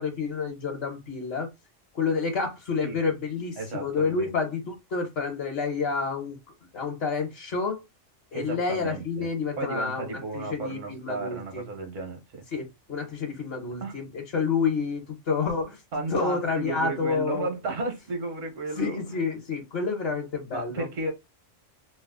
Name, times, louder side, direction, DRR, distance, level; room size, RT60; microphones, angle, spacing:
voice 1, 0.0-1.5 1.9-6.4 6.7-7.8 8.3-10.1 10.3-11.7 12.5-15.8 16.1-17.5 18.7-20.9, left 5 dB, 55° left, 1.1 m, -29 dB
voice 2, 3.6-4.3 8.3-9.3 9.6-12.4 13.8-14.0 15.9-19.2 20.5-21.1, right 3 dB, 80° right, 1.4 m, -33 dB
3.1 x 2.0 x 3.5 m
omnidirectional pair, 1.3 m